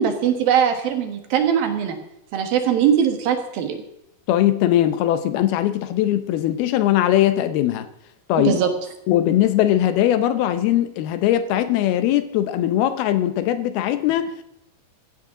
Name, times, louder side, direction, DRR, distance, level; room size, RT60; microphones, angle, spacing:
voice 1, 0.0-2.0 2.3-3.8 8.4-8.7, right 8 dB, 70° right, 5 dB, 3.2 m, -20 dB
voice 2, 4.3-7.9 8.3-8.6 9.1-14.4, left 12 dB, 80° left, 10 dB, 2.7 m, -20 dB
16.0 x 15.0 x 3.8 m, 0.80 s
omnidirectional pair, 4.5 m